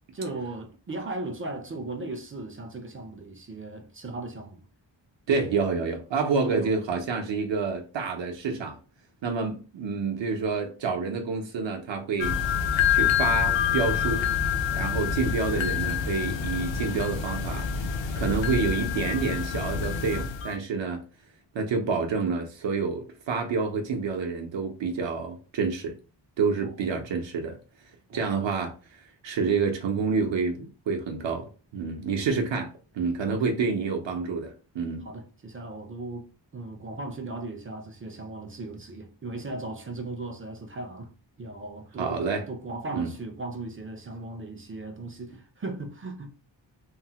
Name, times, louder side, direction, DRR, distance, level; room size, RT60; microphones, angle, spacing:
voice 1, 0.1-4.6 6.4-6.7 26.6-27.0 28.1-28.4 32.2-32.4 33.3-33.6 35.0-41.1 41.4-46.3, right 2 dB, 30° right, 0.4 m, -37 dB
voice 2, 5.3-8.8 9.2-12.4 12.9-14.3 14.7-17.8 18.2-21.0 21.5-25.9 26.4-27.6 28.1-35.1 42.0-42.5 42.9-43.1, right 4 dB, 75° right, 0.6 m, -28 dB
sound 1, 12.2-20.5, left 8 dB, 80° left, 0.6 m, -27 dB
3.2 x 2.0 x 2.8 m
wide cardioid pair, 165°, 45 cm